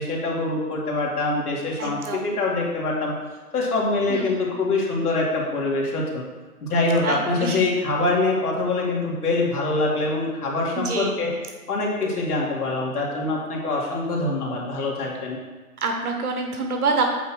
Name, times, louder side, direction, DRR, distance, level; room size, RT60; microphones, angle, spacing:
voice 1, 0.0-3.1 3.5-6.2 6.6-11.3 11.7-15.4, left 2 dB, 75° left, -3 dB, 2.4 m, -24 dB
voice 2, 1.8-2.3 4.1-4.3 7.0-7.6 10.7-11.2 15.8-17.0, right 4 dB, 70° right, 3 dB, 1.1 m, -26 dB
8.3 x 3.0 x 6.2 m, 1.3 s
hypercardioid pair, 160°, 46 cm